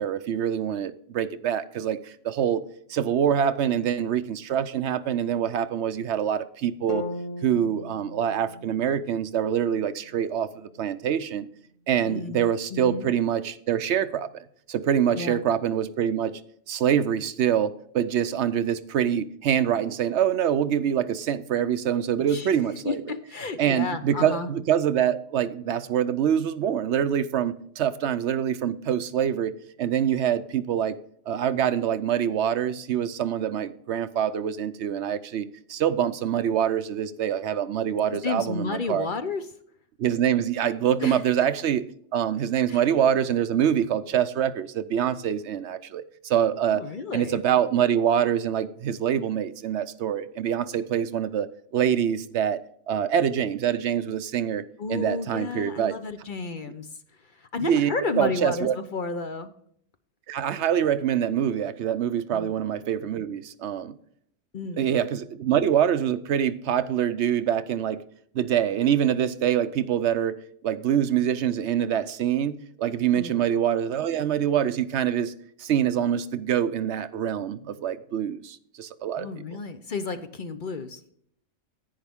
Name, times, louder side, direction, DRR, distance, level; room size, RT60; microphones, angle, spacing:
voice 1, 0.0-7.1 7.4-11.5 11.9-14.3 14.7-16.4 16.7-23.0 23.6-31.0 31.3-39.1 40.0-41.8 42.1-46.8 47.1-51.5 51.7-52.6 52.9-54.6 54.9-56.0 57.6-58.8 60.3-64.0 64.8-68.0 68.3-75.3 75.6-79.3, right 9 dB, 70° right, 0.8 m, -25 dB
sound 1, 6.9-11.0, left 2 dB, 85° left, 1.3 m, -39 dB
voice 2, 12.0-13.1 15.1-15.4 22.3-22.5 22.8-24.5 38.2-39.4 41.0-41.2 42.7-42.8 46.7-47.4 54.8-56.9 57.3-59.5 62.3-62.5 64.5-64.8 73.1-73.4 79.2-81.0, left 4 dB, 45° left, 0.8 m, -32 dB
10.5 x 9.2 x 3.5 m
omnidirectional pair, 1.3 m